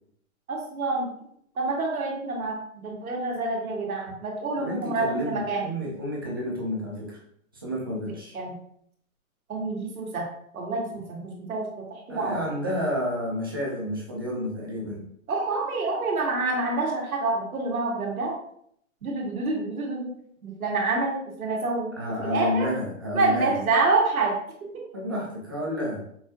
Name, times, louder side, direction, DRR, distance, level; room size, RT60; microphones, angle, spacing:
voice 1, 0.5-1.1 1.6-5.7 8.3-8.6 9.5-10.3 10.5-12.5 15.3-18.3 19.0-20.1 20.4-22.7 23.1-24.3, right 3 dB, 85° right, -1 dB, 1.5 m, -27 dB
voice 2, 4.5-7.2 7.6-8.4 12.1-15.0 22.0-23.6 24.9-26.0, left 1 dB, 20° right, -4 dB, 0.4 m, -30 dB
5.3 x 2.6 x 2.7 m, 0.69 s
hypercardioid pair, 160°, 42 cm